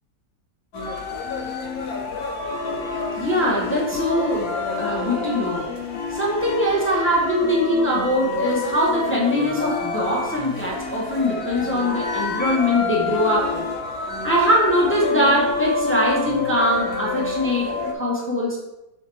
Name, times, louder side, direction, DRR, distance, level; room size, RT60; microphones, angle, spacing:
sound 1, 0.7-17.9, left 4 dB, 60° left, 1.4 m, -28 dB
voice 1, 3.2-5.6 6.1-13.6 14.0-18.6, equal, 5° left, -5 dB, 1.2 m, -22 dB
7.0 x 4.4 x 4.7 m, 0.96 s
omnidirectional pair, 2.0 m